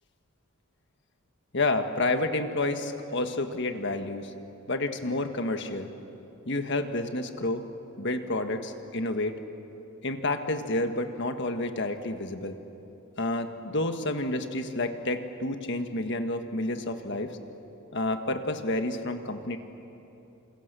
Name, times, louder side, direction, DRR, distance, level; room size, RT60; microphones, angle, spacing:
voice 1, 1.5-4.3 4.7-5.9 6.4-7.6 8.0-9.4 10.0-12.6 13.2-17.3 17.9-19.6, left 2 dB, 55° left, 6 dB, 1.6 m, -29 dB
29.5 x 26.5 x 6.9 m, 3.0 s
head